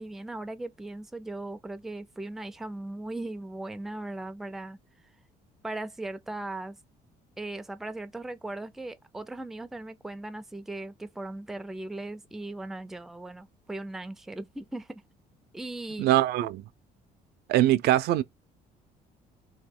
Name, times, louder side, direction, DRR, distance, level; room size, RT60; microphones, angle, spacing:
voice 1, 0.0-4.8 5.6-6.8 7.4-15.0 15.5-16.1, right 2 dB, ahead, 0.3 m, -38 dB
voice 2, 16.0-16.6 17.5-18.2, right 14 dB, 75° right, 0.4 m, -22 dB
2.9 x 2.2 x 3.6 m
cardioid pair, 110°, 17 cm